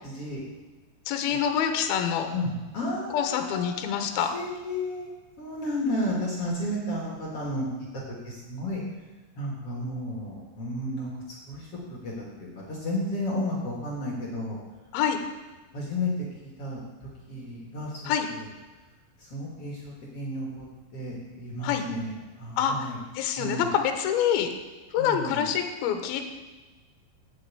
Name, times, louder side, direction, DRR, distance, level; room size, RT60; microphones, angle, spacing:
voice 1, 0.0-0.4 1.3-1.4 2.3-4.0 4.3-5.1 5.4-8.8 9.4-12.1 12.4-14.6 15.7-16.8 17.3-18.4 19.2-20.7 20.9-22.1 22.4-23.0 23.4-23.7 25.0-25.5, left 1 dB, 60° left, -3 dB, 1.5 m, -33 dB
voice 2, 1.1-2.3 3.1-4.3 14.9-15.2 18.1-18.3 21.6-21.8 22.6-24.5 24.9-26.3, left 8 dB, 75° left, 6 dB, 2.3 m, -26 dB
8.6 x 7.9 x 8.4 m, 1.3 s
omnidirectional pair, 5.7 m